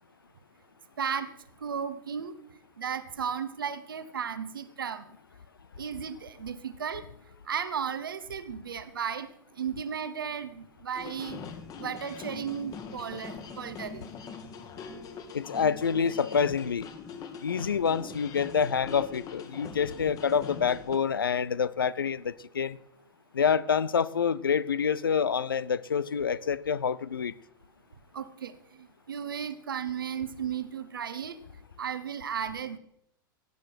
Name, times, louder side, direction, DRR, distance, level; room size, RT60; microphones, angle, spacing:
voice 1, 1.0-1.3 1.6-2.3 2.8-5.0 5.8-7.1 7.5-9.3 9.6-11.4 11.8-14.0 28.1-31.4 31.8-32.8, right 7 dB, 70° right, 1.0 m, -35 dB
sound 1, 11.0-21.0, left 6 dB, 30° left, 1.7 m, -43 dB
voice 2, 15.3-16.9 17.4-22.8 23.3-27.3, left 6 dB, 75° left, 0.6 m, -27 dB
17.0 x 9.4 x 4.6 m
figure-of-eight pair, 90°, 12 cm